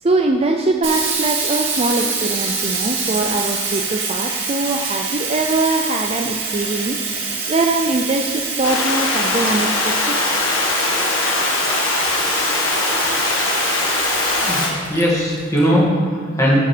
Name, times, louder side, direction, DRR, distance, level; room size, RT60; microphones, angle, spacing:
voice 1, 0.0-10.2, right 2 dB, 25° right, 4 dB, 0.4 m, -22 dB
Sink (filling or washing), 0.8-15.6, right 4 dB, 60° right, 2.1 m, -25 dB
sound 1, 8.6-14.7, left 3 dB, 65° left, 1.6 m, -21 dB
voice 2, 14.9-16.6, equal, 15° left, -5 dB, 2.2 m, -18 dB
8.6 x 5.7 x 7.8 m, 2.3 s
head